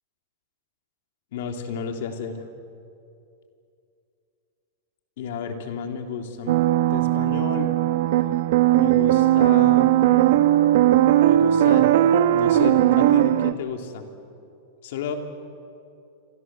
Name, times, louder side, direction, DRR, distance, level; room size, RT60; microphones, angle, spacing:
voice 1, 1.3-2.4 5.2-6.6 6.9-7.7 8.7-9.9 11.2-11.9 12.3-14.1 14.8-15.1, left 6 dB, 70° left, 4 dB, 3.3 m, -32 dB
sound 1, 6.5-13.5, right 13 dB, 65° right, 1.2 m, -18 dB
28.0 x 25.0 x 7.8 m, 2.6 s
supercardioid pair, 140°, 0 cm